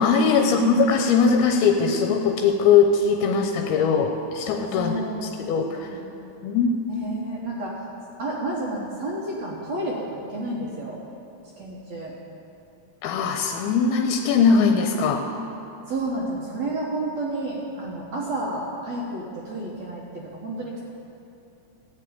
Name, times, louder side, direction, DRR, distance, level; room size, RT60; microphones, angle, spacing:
voice 1, 0.0-4.9 5.2-6.0 6.4-6.8 13.0-15.2, left 5 dB, 85° left, 4 dB, 2.5 m, -20 dB
voice 2, 4.7-6.2 6.9-7.9 8.2-11.0 11.6-12.1 15.9-20.8, right 1 dB, 60° right, -3 dB, 1.9 m, -31 dB
13.5 x 6.8 x 8.6 m, 2.7 s
omnidirectional pair, 4.5 m